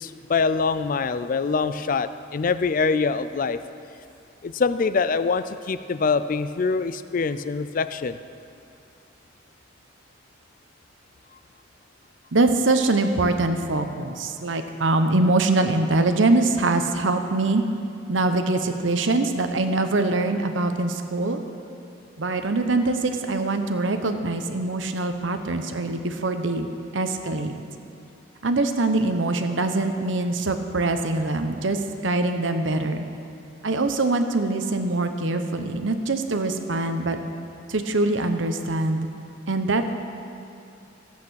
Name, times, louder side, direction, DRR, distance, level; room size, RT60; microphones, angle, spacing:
voice 1, 0.0-3.6 4.4-8.2, left 4 dB, 45° left, 13 dB, 0.4 m, -24 dB
voice 2, 12.3-17.6 18.1-21.4 22.2-26.7 26.9-27.5 28.4-33.0 33.6-37.2 37.7-39.1 39.5-39.9, right 2 dB, 75° right, 7 dB, 0.9 m, -23 dB
14.0 x 8.4 x 6.3 m, 2.6 s
head